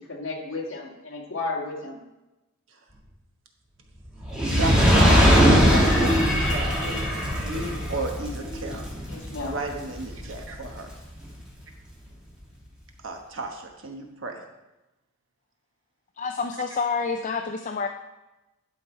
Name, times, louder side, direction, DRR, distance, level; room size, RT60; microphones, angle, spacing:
voice 1, 0.0-2.0 9.1-9.6, left 3 dB, 65° left, -1 dB, 1.9 m, -33 dB
Fire, 4.2-10.6 11.3-11.4, equal, 5° right, 2.1 m, -21 dB
voice 2, 4.5-8.9 9.4-10.9 13.0-14.4, right 2 dB, 60° right, 3 dB, 1.2 m, -33 dB
voice 3, 16.2-17.9, left 5 dB, 35° left, 5 dB, 0.4 m, -28 dB
11.0 x 5.5 x 4.5 m, 1.0 s
head